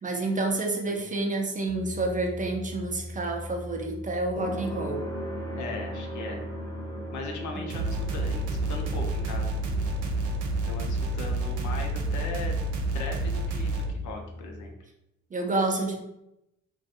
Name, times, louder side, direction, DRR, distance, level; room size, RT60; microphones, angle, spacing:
voice 1, 0.0-5.1 7.6-7.7 15.3-16.0, right 2 dB, 25° right, 2 dB, 0.4 m, -29 dB
sound 1, 1.7-14.7, equal, 10° left, 0.7 m, -38 dB
voice 2, 5.6-6.4 7.1-9.6 10.6-12.5 12.9-14.7, left 3 dB, 75° left, 2 dB, 0.6 m, -38 dB
sound 2, 7.7-13.9, right 2 dB, 80° right, 0.5 m, -29 dB
2.4 x 2.2 x 2.7 m, 0.86 s
cardioid pair, 90°, 30 cm